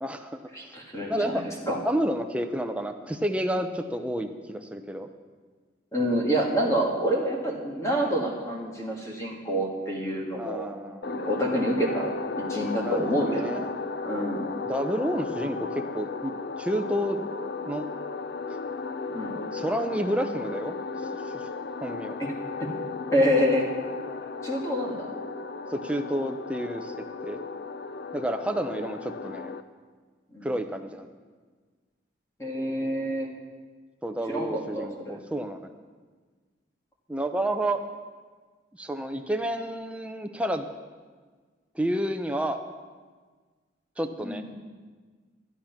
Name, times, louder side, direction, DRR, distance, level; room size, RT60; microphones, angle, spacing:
voice 1, 0.0-0.4 1.1-1.4 1.8-5.1 10.4-11.1 12.8-13.7 14.7-17.2 17.7-17.9 19.5-20.7 21.3-21.5 21.8-22.2 25.7-26.9 27.2-27.4 28.1-29.5 30.4-31.1 34.0-35.7 37.1-37.8 38.8-40.7 41.7-42.6 44.0-44.4, right 1 dB, 5° right, 6 dB, 0.6 m, -30 dB
voice 2, 0.5-1.8 5.9-10.7 11.1-13.7 14.0-14.5 19.1-19.4 22.2-22.3 22.6-22.7 23.1-23.7 24.4-25.1 30.3-30.5 32.4-33.3 34.3-35.2 44.2-44.5, equal, 15° left, -1 dB, 1.9 m, -27 dB
sound 1, 11.0-29.6, left 4 dB, 55° left, 0.5 m, -35 dB
11.5 x 11.0 x 5.8 m, 1.5 s
head